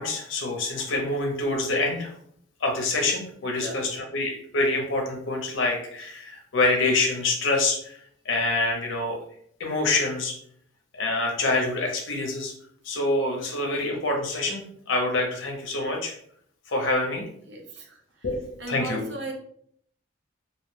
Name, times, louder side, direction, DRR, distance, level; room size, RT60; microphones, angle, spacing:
voice 1, 0.0-2.1 2.6-8.0 8.2-9.2 9.6-10.3 10.9-12.5 12.8-16.1 16.7-17.3 18.2-19.0, left 2 dB, 70° left, 1 dB, 0.6 m, -26 dB
voice 2, 3.5-3.9 17.5-19.3, right 2 dB, 60° right, 2 dB, 0.6 m, -38 dB
2.7 x 2.1 x 3.1 m, 0.64 s
head